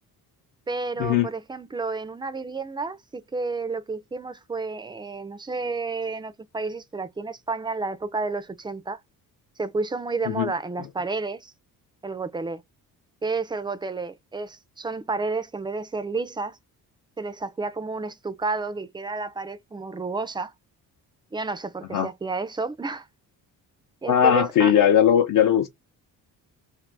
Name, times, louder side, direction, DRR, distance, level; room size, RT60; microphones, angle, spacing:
voice 1, 0.7-9.0 9.6-11.5 12.0-12.6 13.2-16.6 17.2-20.5 21.3-23.1 24.0-24.7, right 3 dB, 15° right, 0.4 m, -31 dB
voice 2, 24.1-25.7, left 9 dB, 65° left, 0.7 m, -19 dB
2.6 x 2.6 x 3.3 m
cardioid pair, 125°, 35 cm